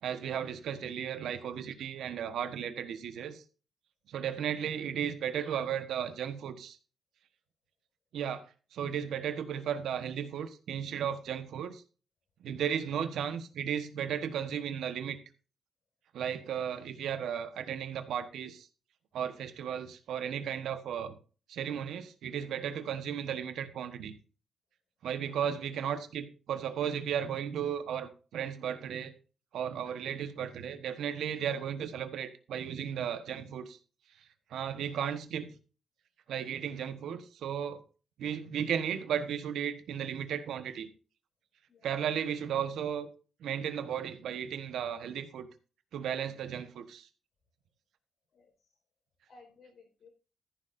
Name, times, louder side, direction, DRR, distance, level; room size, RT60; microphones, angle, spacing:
voice 1, 0.0-3.4 4.1-6.8 8.1-11.8 12.4-15.2 16.1-18.7 19.1-21.1 21.5-24.1 25.0-29.1 29.5-33.8 34.5-35.5 36.3-37.8 38.2-40.9 41.8-43.1 43.4-45.5 45.9-47.1, right 8 dB, 85° right, 1.2 m, -35 dB
voice 2, 48.3-48.8 49.3-50.1, left 3 dB, 60° left, 4.6 m, -58 dB
14.0 x 11.0 x 2.6 m
wide cardioid pair, 155°, 0 cm